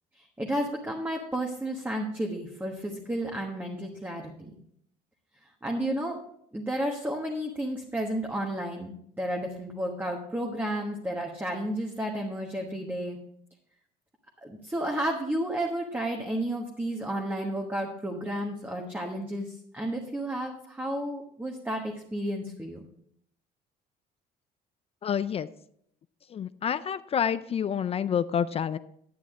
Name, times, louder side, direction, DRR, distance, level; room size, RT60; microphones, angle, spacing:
voice 1, 0.2-4.5 5.6-6.2 6.5-13.2 14.4-22.9, right 1 dB, 10° right, 0 dB, 1.2 m, -32 dB
voice 2, 25.0-25.5 26.3-28.8, left 8 dB, 35° left, 14 dB, 0.4 m, -28 dB
10.0 x 9.3 x 3.7 m, 0.70 s
cardioid pair, 110°, 17 cm